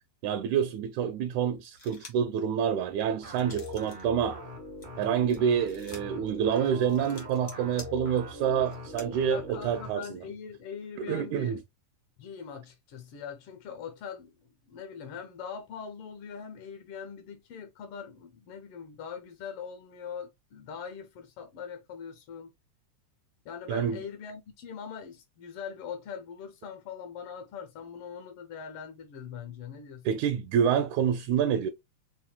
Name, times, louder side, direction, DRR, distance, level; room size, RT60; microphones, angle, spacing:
voice 1, 0.2-4.4 5.0-10.2 11.0-11.6 23.7-24.0 30.1-31.7, right 8 dB, 80° right, 1.8 m, -27 dB
sound 1, 1.6-2.3 2.8-4.0 4.4-9.1, left 4 dB, 60° left, 0.8 m, -50 dB
sound 2, 3.2-9.9, left 1 dB, 50° right, 0.6 m, -42 dB
voice 2, 9.3-11.6 12.2-14.3 14.7-22.5 23.4-30.2, left 7 dB, 75° left, 1.3 m, -42 dB
5.6 x 2.6 x 2.3 m
omnidirectional pair, 3.5 m